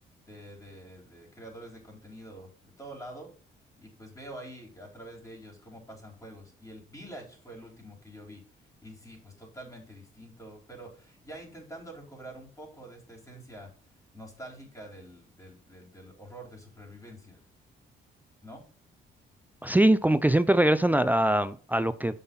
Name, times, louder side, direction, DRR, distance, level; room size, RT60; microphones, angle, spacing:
voice 1, 0.2-3.3 3.8-8.4 8.8-13.7 14.1-17.4 18.4-18.6, right 1 dB, 15° left, 5.1 m, -46 dB
voice 2, 19.6-22.2, right 1 dB, 10° right, 0.5 m, -22 dB
8.4 x 5.7 x 5.7 m
cardioid pair, 90°, 20 cm